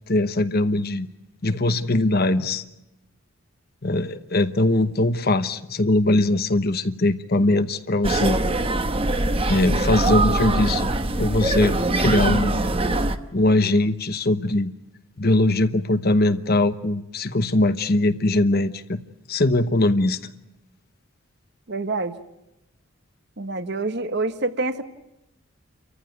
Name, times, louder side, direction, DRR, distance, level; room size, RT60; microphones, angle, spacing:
voice 1, 0.1-1.1 1.4-2.6 3.8-8.4 9.5-10.9 11.2-12.6 13.3-14.7 15.2-19.0 19.3-20.2, left 2 dB, 45° left, 11 dB, 0.9 m, -21 dB
sound 1, 8.0-13.2, right 2 dB, 25° right, 1.0 m, -22 dB
voice 2, 21.7-22.2 23.4-24.8, right 3 dB, 55° right, 10 dB, 1.3 m, -26 dB
30.0 x 14.5 x 9.2 m, 0.93 s
head